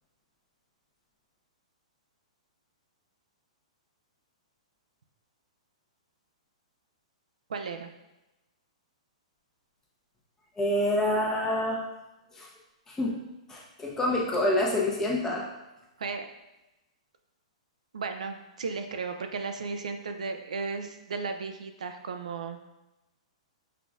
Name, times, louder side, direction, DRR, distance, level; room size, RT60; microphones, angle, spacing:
voice 1, 7.5-7.9 16.0-16.3 17.9-22.6, right 4 dB, 90° right, 6 dB, 0.5 m, -35 dB
voice 2, 10.6-11.8 12.3-12.5 12.9-13.2 13.5-15.5, left 1 dB, 15° left, -2 dB, 0.9 m, -27 dB
5.7 x 3.8 x 2.4 m, 0.98 s
hypercardioid pair, 145°, 4 cm